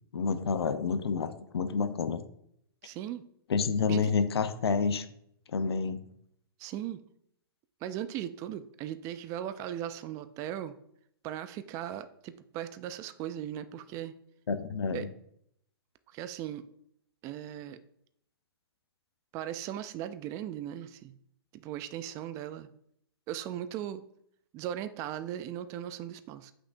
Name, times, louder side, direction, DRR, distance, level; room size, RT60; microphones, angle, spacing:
voice 1, 0.1-2.2 3.5-5.0 5.5-6.0 14.5-15.1, left 5 dB, 80° left, 10 dB, 0.7 m, -29 dB
voice 2, 2.8-3.2 3.9-4.1 6.6-7.0 7.8-10.8 11.2-14.1 14.9-15.1 16.1-16.6 17.2-17.8 19.3-21.1 21.5-22.7 23.3-24.0 24.5-26.5, right 11 dB, 25° right, 12 dB, 0.3 m, -38 dB
8.2 x 5.8 x 2.6 m, 0.71 s
hypercardioid pair, 135°, 13 cm